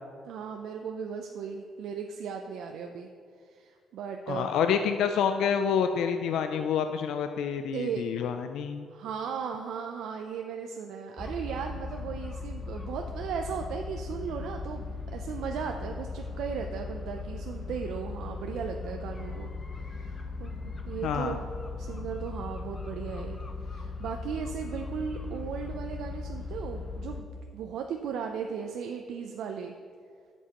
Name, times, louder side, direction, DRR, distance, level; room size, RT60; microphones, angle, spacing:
voice 1, 0.3-3.1 3.4-4.5 7.7-8.0 8.9-19.5 19.7-21.5 21.8-29.7, right 7 dB, 80° right, 4 dB, 0.5 m, -37 dB
voice 2, 4.3-8.9 21.0-21.4, left 7 dB, 80° left, 7 dB, 0.3 m, -28 dB
sound 1, 11.2-27.2, left 3 dB, 30° left, 0.7 m, -38 dB
11.0 x 7.2 x 3.0 m, 2.2 s
cardioid pair, 90°, 0 cm